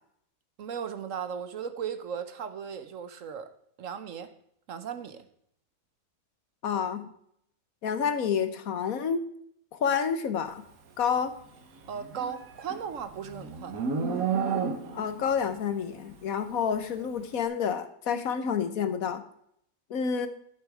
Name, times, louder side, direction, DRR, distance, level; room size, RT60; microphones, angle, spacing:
voice 1, 0.6-3.5 3.8-4.3 4.7-5.2 11.9-13.8, right 7 dB, 70° right, 1.3 m, -37 dB
voice 2, 6.6-7.1 7.8-9.2 9.8-10.6 11.0-11.3 14.9-19.2 19.9-20.3, left 7 dB, 90° left, 1.5 m, -29 dB
Livestock farm animals working animals, 11.9-15.2, right 6 dB, 90° right, 1.7 m, -31 dB
11.5 x 7.5 x 4.9 m
omnidirectional pair, 1.4 m